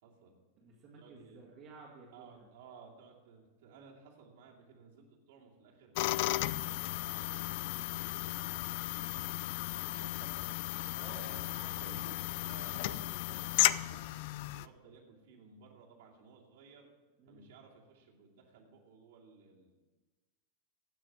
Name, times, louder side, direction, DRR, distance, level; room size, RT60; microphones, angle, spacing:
voice 1, 0.0-0.4 0.9-1.4 2.1-5.9 6.6-10.5 11.8-14.1 14.5-16.9 17.3-19.7, right 5 dB, 55° right, -3 dB, 2.6 m, -57 dB
voice 2, 0.6-2.5 10.9-12.2 17.2-17.5, right 3 dB, 35° right, -2 dB, 2.0 m, -53 dB
sound 1, 6.0-14.7, left 16 dB, 50° left, 0.3 m, -35 dB
15.5 x 6.3 x 6.7 m, 1.2 s
figure-of-eight pair, 90°, 0 cm